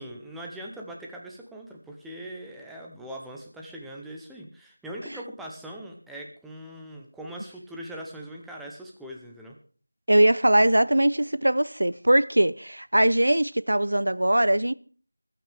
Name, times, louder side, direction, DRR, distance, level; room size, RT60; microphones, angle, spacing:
voice 1, 0.0-9.6, right 1 dB, ahead, 0.8 m, -41 dB
voice 2, 10.1-14.7, right 1 dB, 90° right, 0.7 m, -21 dB
25.0 x 9.1 x 3.5 m
figure-of-eight pair, 175°, 0 cm